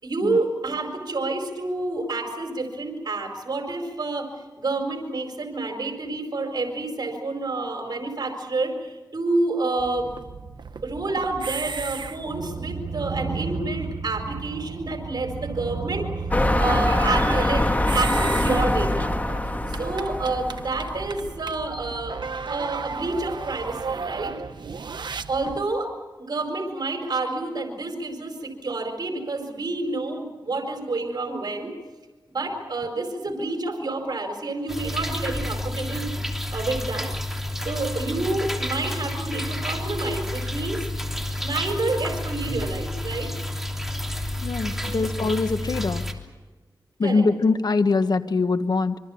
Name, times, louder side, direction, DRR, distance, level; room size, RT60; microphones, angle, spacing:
voice 1, 0.0-4.3 4.6-10.1 10.8-16.1 16.6-19.1 19.7-22.2 22.5-24.4 25.3-25.9 26.3-31.7 32.3-36.1 36.5-37.1 37.6-40.9 41.4-43.3 44.8-45.1 47.0-47.3, right 2 dB, 60° right, 3 dB, 4.5 m, -28 dB
sound 1, 9.8-25.6, right 4 dB, 80° right, 1.1 m, -34 dB
sound 2, 16.3-21.3 21.9-22.0, left 1 dB, 20° left, 1.9 m, -24 dB
sound 3, 34.7-46.1, left 1 dB, 5° right, 3.2 m, -30 dB
voice 2, 44.4-46.0 47.0-49.0, left 3 dB, 65° left, 10 dB, 1.4 m, -23 dB
26.0 x 24.0 x 7.1 m, 1.2 s
cardioid pair, 60°, 8 cm